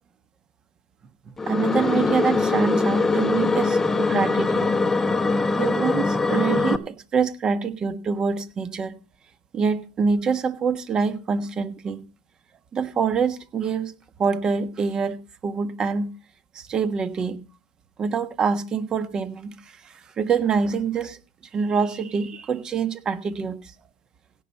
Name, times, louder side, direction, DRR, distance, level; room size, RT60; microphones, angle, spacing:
sound 1, 1.4-6.8, left 3 dB, 15° left, 1.0 m, -22 dB
voice 1, 1.5-4.8 5.3-9.0 9.5-12.0 12.7-13.9 14.2-15.2 15.4-16.1 16.5-17.4 18.0-21.2 21.5-23.7, right 5 dB, 30° right, 1.4 m, -25 dB
17.0 x 5.8 x 5.4 m
hypercardioid pair, 95°, 2 cm